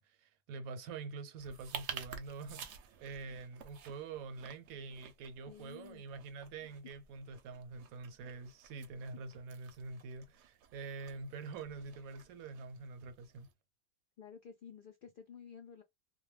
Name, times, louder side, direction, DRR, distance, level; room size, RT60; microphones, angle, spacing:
voice 1, 0.0-13.5, right 4 dB, 90° right, 1.0 m, -46 dB
sound 1, 1.4-13.5, right 7 dB, 65° right, 0.8 m, -52 dB
voice 2, 5.5-6.0 14.2-15.8, left 7 dB, 90° left, 0.4 m, -52 dB
2.2 x 2.2 x 3.1 m
omnidirectional pair, 1.4 m